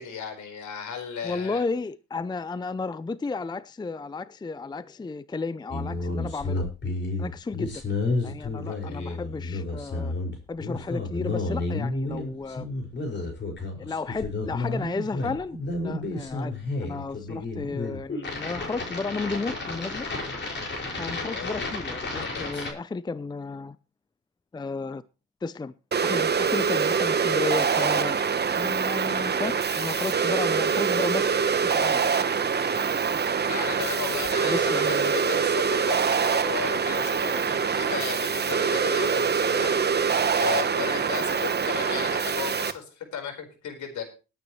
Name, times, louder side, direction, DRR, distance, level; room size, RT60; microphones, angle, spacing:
voice 1, 0.0-1.6 8.9-9.2 21.2-21.7 22.2-22.7 32.6-32.7 33.5-44.0, left 7 dB, 70° left, 5 dB, 4.6 m, -35 dB
voice 2, 1.2-6.6 7.2-7.8 8.2-10.1 10.5-12.7 13.8-20.1 21.0-23.8 24.5-25.0 25.4-25.7 26.0-28.2 28.6-31.3 31.6-32.1 34.4-35.1, left 3 dB, 15° left, 16 dB, 0.5 m, -33 dB
sound 1, 5.7-22.7, left 2 dB, 35° left, 5.5 m, -31 dB
sound 2, 25.9-42.7, right 6 dB, 35° right, 1.1 m, -24 dB
20.5 x 9.2 x 3.1 m, 0.32 s
cardioid pair, 90°, 30 cm